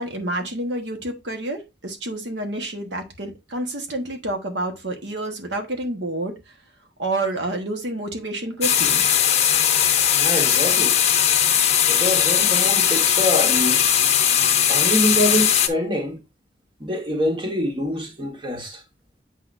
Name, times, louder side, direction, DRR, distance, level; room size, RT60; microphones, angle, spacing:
voice 1, 0.0-6.5 7.0-9.0, right 1 dB, 85° right, 1.3 m, -29 dB
sound 1, 8.6-15.7, left 9 dB, 35° left, 0.8 m, -19 dB
voice 2, 10.2-11.0 11.9-13.9 14.7-16.2 16.8-18.8, left 1 dB, 30° right, 1.5 m, -25 dB
8.1 x 4.8 x 2.6 m
head